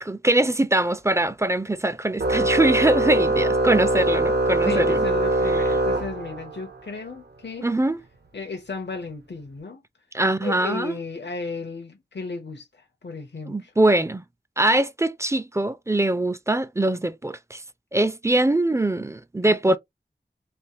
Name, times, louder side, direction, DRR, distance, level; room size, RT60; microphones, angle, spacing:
voice 1, 0.0-5.0 7.6-8.0 10.1-11.0 13.5-14.2 14.6-17.6 17.9-19.8, right 1 dB, 15° right, 0.3 m, -22 dB
Organ, 2.2-6.7, right 2 dB, 65° right, 0.6 m, -22 dB
voice 2, 4.6-7.7 8.3-9.8 10.4-13.7 19.5-19.8, left 3 dB, 75° left, 0.7 m, -34 dB
3.4 x 2.6 x 2.9 m
wide cardioid pair, 55°, 18 cm